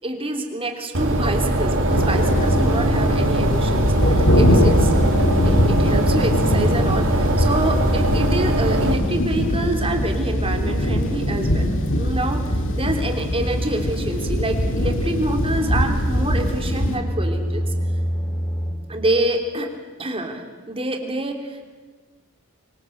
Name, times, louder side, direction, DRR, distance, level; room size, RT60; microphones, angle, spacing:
voice 1, 0.0-4.9 5.4-12.4 12.7-17.7 18.9-19.7 20.0-21.6, right 1 dB, 25° right, 4 dB, 3.2 m, -27 dB
sound 1, 0.9-8.9, right 1 dB, 65° right, 3.1 m, -21 dB
sound 2, 1.9-17.0, equal, 60° left, 2.5 m, -22 dB
sound 3, 9.9-18.7, equal, ahead, 4.4 m, -29 dB
24.5 x 24.5 x 7.9 m, 1.4 s
head